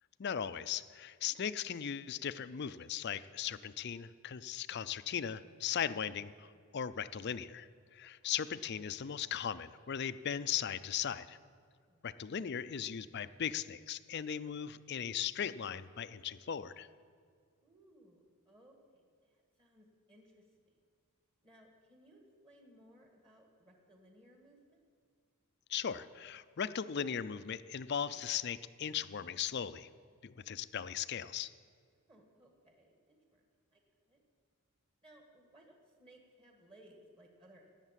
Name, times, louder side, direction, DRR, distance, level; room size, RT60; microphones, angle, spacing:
voice 1, 0.2-6.3 6.7-11.4 12.0-16.9 25.7-29.9 30.2-31.5, left 8 dB, 50° left, 14 dB, 0.4 m, -38 dB
voice 2, 17.6-20.8 21.4-24.8 32.1-33.4 33.7-33.8 34.1-34.2 35.0-37.7, right 1 dB, 25° right, 1 dB, 1.8 m, -62 dB
19.0 x 7.3 x 7.5 m, 2.2 s
head